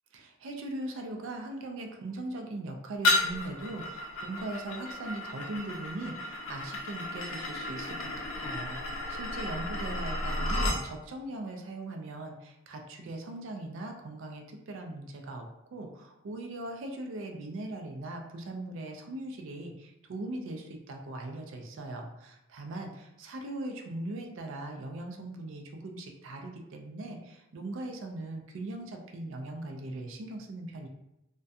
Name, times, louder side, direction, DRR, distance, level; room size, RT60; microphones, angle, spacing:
voice 1, 0.1-30.9, right 2 dB, 65° right, 3 dB, 0.4 m, -40 dB
sound 1, 3.0-10.8, left 1 dB, 75° left, 0.5 m, -33 dB
2.3 x 2.2 x 2.6 m, 0.88 s
head